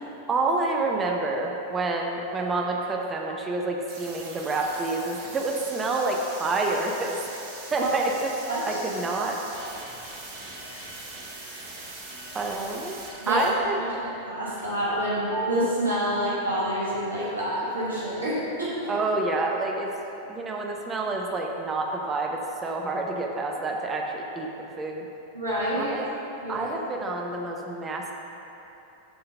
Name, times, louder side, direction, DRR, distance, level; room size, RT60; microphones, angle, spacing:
voice 1, 0.3-7.1 7.7-8.3 8.7-9.4 12.3-13.0 13.3-13.8 18.9-19.9 20.3-24.5 24.8-25.1 25.8-26.1 26.5-28.1, right 3 dB, 20° right, 1 dB, 0.7 m, -28 dB
sound 1, 3.9-13.5, right 2 dB, 50° right, 1.2 m, -41 dB
voice 2, 8.5-8.8 13.2-13.5 13.8-18.9 25.3-26.0 26.4-26.7, equal, 80° right, -8 dB, 1.2 m, -27 dB
7.7 x 3.8 x 5.3 m, 3.0 s
figure-of-eight pair, 90°, 0 cm